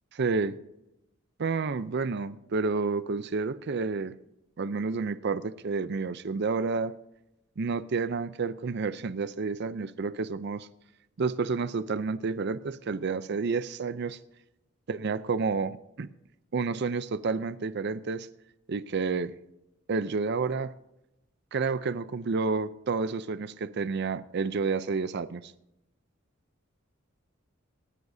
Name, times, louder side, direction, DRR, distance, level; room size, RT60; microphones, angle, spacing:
voice 1, 0.1-0.6 1.4-4.1 4.6-6.9 7.6-10.7 11.2-14.2 14.9-16.1 16.5-18.3 18.7-19.3 19.9-20.7 21.5-25.5, right 4 dB, 55° right, 0.5 m, -30 dB
18.5 x 13.0 x 2.7 m
head